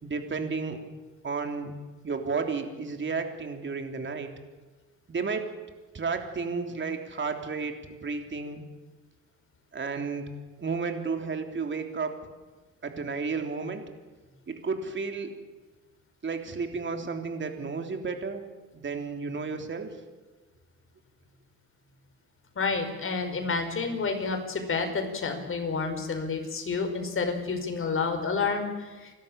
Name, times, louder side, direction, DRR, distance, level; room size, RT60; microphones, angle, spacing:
voice 1, 0.0-0.8 1.2-1.7 2.0-4.3 5.1-5.5 5.9-8.6 9.7-10.2 10.6-12.2 12.8-13.8 14.5-15.3 16.2-20.0, right 4 dB, 40° right, 5 dB, 3.5 m, -32 dB
voice 2, 22.5-29.1, left 4 dB, 45° left, 5 dB, 5.1 m, -29 dB
29.5 x 13.0 x 8.9 m, 1.3 s
cardioid pair, 90°, 30 cm